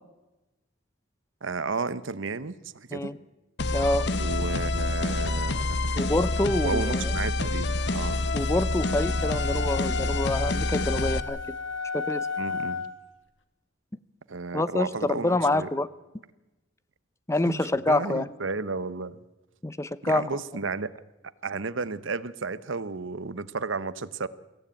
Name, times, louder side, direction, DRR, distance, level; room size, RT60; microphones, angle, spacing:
voice 1, 1.4-3.1 4.2-6.1 6.6-8.2 12.4-12.9 14.3-15.7 17.5-19.2 20.0-20.9 21.4-24.3, right 4 dB, 85° right, 15 dB, 0.9 m, -33 dB
sound 1, 3.6-11.2, left 2 dB, 60° left, 1.0 m, -27 dB
voice 2, 3.7-4.1 6.0-7.1 8.3-11.4 11.9-12.3 14.5-15.9 17.3-18.3 19.6-20.4, left 1 dB, 15° left, 15 dB, 0.6 m, -27 dB
sound 2, 8.8-13.0, left 5 dB, 80° left, 2.0 m, -34 dB
23.5 x 16.0 x 8.9 m, 1.1 s
head